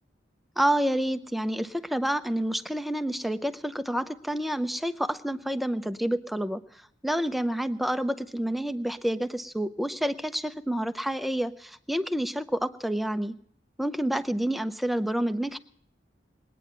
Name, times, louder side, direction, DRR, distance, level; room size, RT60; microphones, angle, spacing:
voice 1, 0.6-6.6 7.0-13.4 13.8-15.6, right 1 dB, ahead, 10 dB, 0.6 m, -28 dB
21.0 x 9.3 x 6.8 m, 0.65 s
head